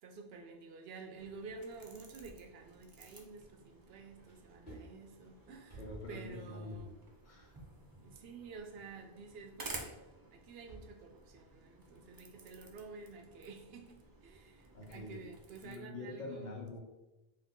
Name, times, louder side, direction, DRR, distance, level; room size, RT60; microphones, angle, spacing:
voice 1, 0.0-5.8 6.1-7.0 8.0-10.0 10.3-16.6, right 4 dB, 75° right, 4 dB, 0.8 m, -50 dB
sound 1, 1.1-15.7, right 2 dB, 35° right, 0.3 m, -54 dB
sound 2, 2.4-3.8 4.0-11.0, right 2 dB, 90° left, 1.7 m, -58 dB
voice 2, 5.8-6.9 7.2-7.6 14.7-15.3 15.6-16.8, left 2 dB, 55° left, 1 dB, 0.7 m, -45 dB
3.7 x 2.7 x 3.6 m, 1.1 s
omnidirectional pair, 1.1 m